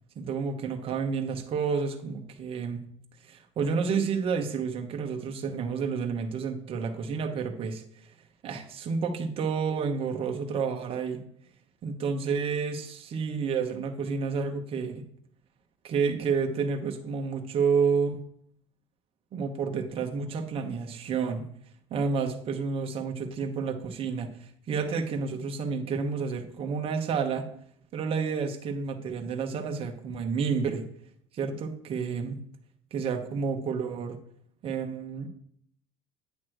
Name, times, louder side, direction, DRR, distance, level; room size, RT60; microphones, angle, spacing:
voice 1, 0.2-2.8 3.3-7.8 8.4-11.2 11.8-15.0 15.8-18.2 19.3-21.5 21.9-24.3 24.7-27.4 27.9-30.9 31.3-32.4 32.9-34.2 34.6-35.3, right 5 dB, 40° right, 3 dB, 1.0 m, -30 dB
8.9 x 3.1 x 6.3 m, 0.67 s
supercardioid pair, 115°, 15 cm